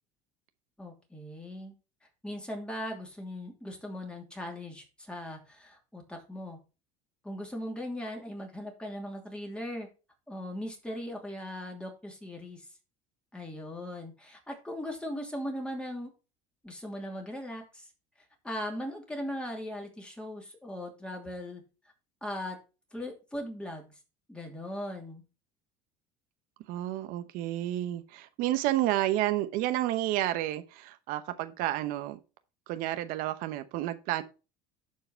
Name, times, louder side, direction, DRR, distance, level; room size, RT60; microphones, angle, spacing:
voice 1, 0.8-1.7 2.2-6.6 7.2-9.9 10.3-12.6 13.3-16.1 16.6-17.9 18.4-21.6 22.2-22.6 22.9-23.9 24.3-25.2, left 1 dB, 5° left, 2.8 m, -39 dB
voice 2, 26.7-32.2 32.7-34.2, right 14 dB, 70° right, 0.9 m, -30 dB
11.0 x 4.8 x 4.5 m
cardioid pair, 120°, 15 cm